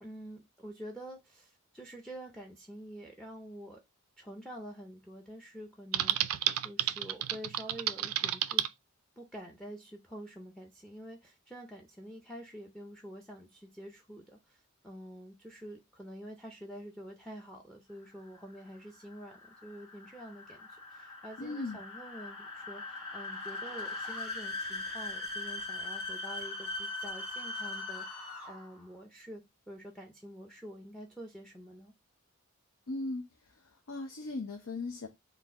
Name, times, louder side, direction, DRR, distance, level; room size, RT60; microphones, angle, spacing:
voice 1, 0.0-3.8 4.2-6.4 6.6-8.6 9.2-28.0 28.5-29.4 29.7-31.9, equal, 5° left, 0.4 m, -47 dB
Typing, 5.9-8.7, right 13 dB, 85° right, 0.3 m, -31 dB
sound 1, 18.1-28.8, left 3 dB, 20° left, 1.5 m, -40 dB
voice 2, 21.4-21.8 32.9-33.2 33.9-35.1, left 2 dB, 80° left, 0.7 m, -37 dB
4.0 x 2.6 x 3.5 m
head